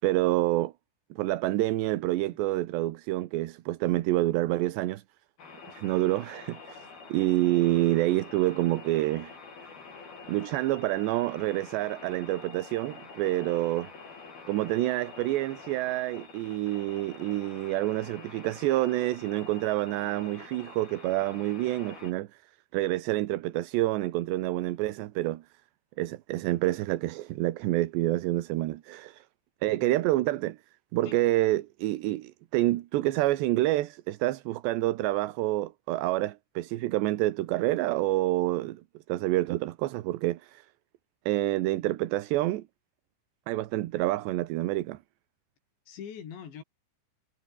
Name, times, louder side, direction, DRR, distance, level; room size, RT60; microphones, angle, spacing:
voice 1, 0.0-0.7 1.1-5.0 5.7-9.3 10.3-13.9 14.5-22.3 22.7-25.4 26.0-29.2 29.6-30.6 30.9-38.8 39.1-40.7 41.3-42.6 43.5-45.0, right 16 dB, 80° right, 3.3 m, -28 dB
sound 1, 5.4-22.1, left 4 dB, 60° left, 8.2 m, -47 dB
voice 2, 29.7-30.0 31.0-31.2 45.9-46.6, left 8 dB, 90° left, 5.9 m, -43 dB
omnidirectional pair, 4.9 m